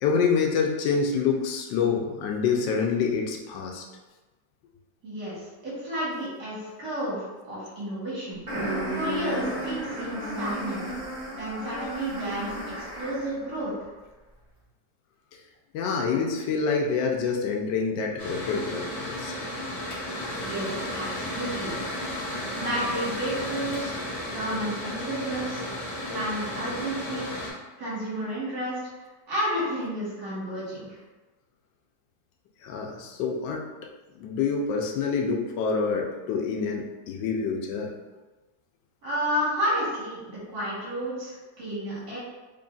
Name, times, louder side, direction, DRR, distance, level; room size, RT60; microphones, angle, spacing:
voice 1, 0.0-3.8 15.7-19.3 32.6-33.6 34.2-37.9, left 5 dB, 85° left, 1 dB, 1.3 m, -27 dB
voice 2, 5.0-8.4 8.9-10.8 11.3-13.7 20.4-21.7 22.5-23.9 24.3-25.6 26.1-27.3 27.8-28.8 29.3-31.0 39.0-42.2, equal, 60° right, -8 dB, 1.9 m, -31 dB
sound 1, 8.5-13.4, right 1 dB, 30° right, 1.2 m, -33 dB
Mechanical fan, 18.2-27.5, left 1 dB, 45° left, 1.1 m, -33 dB
3.8 x 3.4 x 2.3 m, 1.2 s
omnidirectional pair, 1.9 m